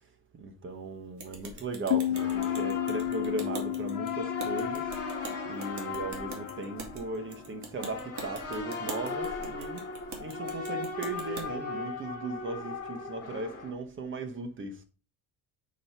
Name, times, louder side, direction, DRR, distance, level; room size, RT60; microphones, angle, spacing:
voice 1, 0.3-5.2 5.5-9.9 10.2-14.8, right 2 dB, 30° right, 1.1 m, -37 dB
sound 1, 1.2-11.5, right 4 dB, 45° right, 2.0 m, -44 dB
sound 2, 1.9-7.2, left 13 dB, 90° left, 0.8 m, -33 dB
sound 3, 2.1-13.7, left 4 dB, 35° left, 2.5 m, -38 dB
6.3 x 4.3 x 5.6 m
cardioid pair, 150°, 38 cm